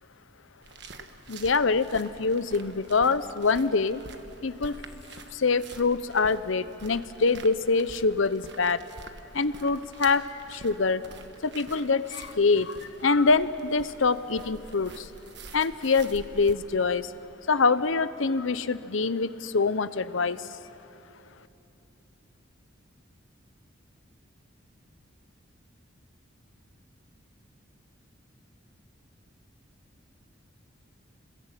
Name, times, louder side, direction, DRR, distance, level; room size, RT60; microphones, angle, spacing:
sound 1, 0.6-16.5, right 3 dB, 60° right, 1.4 m, -47 dB
voice 1, 1.3-4.0 4.4-4.8 5.3-8.8 9.3-11.1 11.4-15.1 15.5-17.1 17.5-20.5, left 4 dB, 80° left, 14 dB, 0.8 m, -25 dB
29.5 x 21.0 x 9.1 m, 2.9 s
head